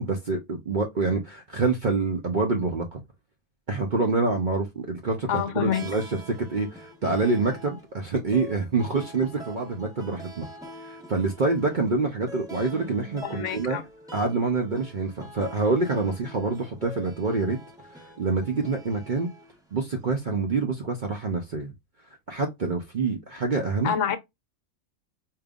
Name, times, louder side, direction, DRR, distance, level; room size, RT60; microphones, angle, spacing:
voice 1, 0.0-3.0 3.7-10.5 10.8-13.8 14.1-17.6 17.9-19.3 19.7-21.7 22.3-23.9, right 3 dB, 55° right, 0.5 m, -26 dB
voice 2, 5.3-5.9 13.2-13.8 23.8-24.2, left 8 dB, 60° left, 1.0 m, -27 dB
sound 1, 5.6-20.0, right 1 dB, 5° right, 0.9 m, -45 dB
5.1 x 2.8 x 2.3 m
omnidirectional pair, 1.6 m